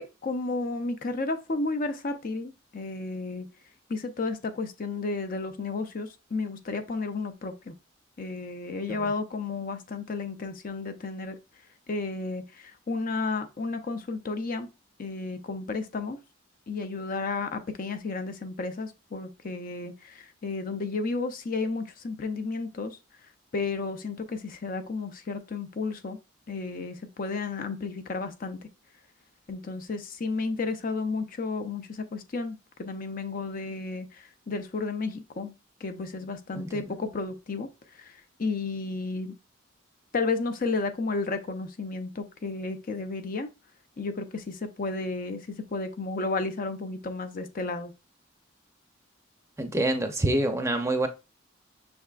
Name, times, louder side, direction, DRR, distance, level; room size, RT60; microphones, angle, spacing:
voice 1, 0.0-3.5 3.9-7.7 8.2-11.4 11.9-14.7 15.0-16.2 16.7-23.0 23.5-26.2 26.5-28.6 29.5-35.5 35.8-39.3 40.1-43.5 44.0-47.9, left 3 dB, 45° left, 0.5 m, -32 dB
voice 2, 36.5-36.9 49.6-51.1, right 1 dB, 15° right, 0.6 m, -26 dB
6.4 x 3.4 x 2.4 m
head